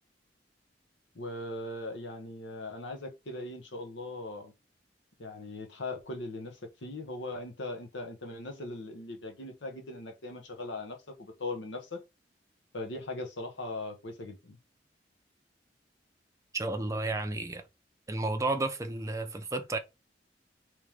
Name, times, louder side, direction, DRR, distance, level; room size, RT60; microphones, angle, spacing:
voice 1, 1.1-4.5 5.2-12.0 12.7-14.6, left 2 dB, 90° left, 1.0 m, -39 dB
voice 2, 16.5-17.6 18.1-19.8, right 2 dB, 15° right, 0.6 m, -32 dB
3.1 x 2.9 x 3.5 m
head